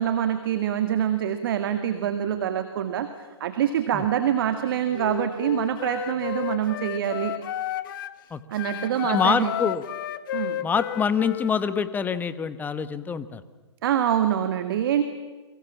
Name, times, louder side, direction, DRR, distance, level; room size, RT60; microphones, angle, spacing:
voice 1, 0.0-3.1 3.4-7.3 8.5-9.5 10.3-10.6 13.8-15.0, right 10 dB, 50° right, 8 dB, 1.9 m, -25 dB
Wind instrument woodwind instrument, 4.9-8.2 8.5-11.9, left 12 dB, 45° left, 1.1 m, -32 dB
voice 2, 9.0-9.9 10.6-13.4, left 6 dB, 10° left, 14 dB, 1.2 m, -25 dB
29.5 x 24.0 x 7.3 m, 1.2 s
figure-of-eight pair, 115°, 15 cm